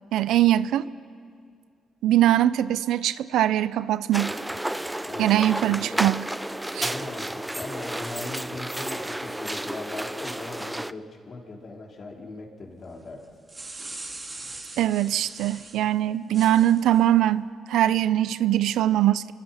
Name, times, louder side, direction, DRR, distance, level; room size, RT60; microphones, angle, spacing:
voice 1, 0.1-0.9 2.0-4.4 5.2-6.3 6.7-6.9 14.8-19.3, right 12 dB, 85° right, 0.6 m, -22 dB
sound 1, 4.1-10.9, right 1 dB, 10° right, 0.5 m, -31 dB
voice 2, 5.1-5.9 6.8-13.2, left 3 dB, 45° left, 3.9 m, -39 dB
sound 2, 13.2-15.8 16.3-17.0, right 2 dB, 25° right, 3.6 m, -40 dB
28.5 x 24.0 x 5.7 m
cardioid pair, 90°, 0 cm